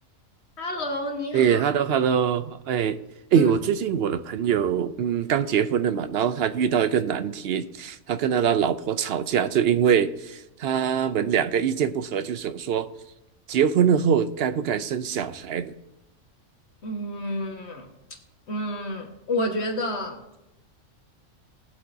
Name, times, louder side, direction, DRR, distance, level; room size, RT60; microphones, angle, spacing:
voice 1, 0.6-1.6 3.3-3.5 16.8-17.9 18.5-20.4, left 1 dB, 55° left, 3 dB, 1.7 m, -30 dB
voice 2, 1.3-3.0 3.3-12.9 13.5-15.7, right 8 dB, 65° right, 12 dB, 0.7 m, -23 dB
20.0 x 7.8 x 2.7 m, 0.93 s
omnidirectional pair, 1.4 m